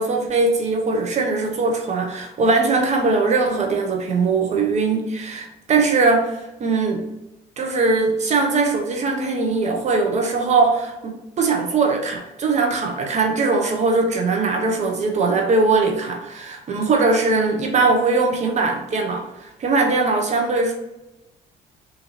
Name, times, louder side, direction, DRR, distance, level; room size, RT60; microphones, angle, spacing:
voice 1, 0.0-7.0 7.6-20.7, right 3 dB, 40° right, 2 dB, 0.8 m, -20 dB
3.7 x 2.8 x 3.0 m, 0.94 s
cardioid pair, 110°, 17 cm